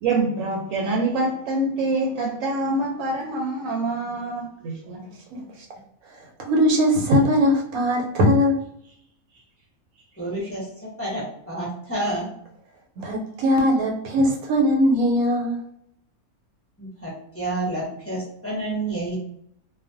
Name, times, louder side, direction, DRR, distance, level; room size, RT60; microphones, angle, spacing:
voice 1, 0.0-5.0 5.3-5.5, right 2 dB, 70° right, 0 dB, 0.9 m, -25 dB
voice 2, 6.2-8.6 13.0-15.6, equal, 90° right, 0 dB, 1.1 m, -20 dB
voice 3, 10.2-10.7 11.0-12.3 16.8-19.2, right 1 dB, 15° left, -7 dB, 0.6 m, -29 dB
2.4 x 2.2 x 2.5 m, 0.73 s
omnidirectional pair, 1.5 m